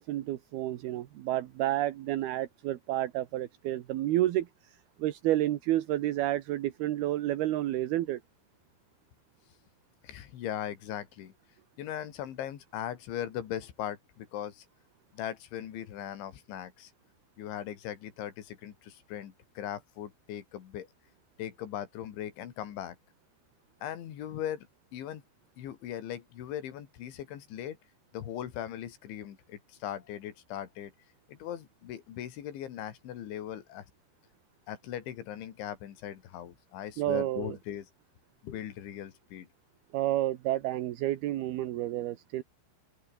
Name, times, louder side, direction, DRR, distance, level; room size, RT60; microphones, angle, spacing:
voice 1, 0.0-8.2 37.0-37.6 39.9-42.4, right 14 dB, 70° right, 2.9 m, -30 dB
voice 2, 10.0-11.3 11.8-14.7 15.1-16.9 17.4-20.9 21.4-23.0 23.8-24.7 24.9-25.2 25.6-27.8 28.1-30.9 31.3-33.9 34.7-37.9 38.4-39.5, left 10 dB, 85° left, 4.8 m, -39 dB
open air
omnidirectional pair, 5.2 m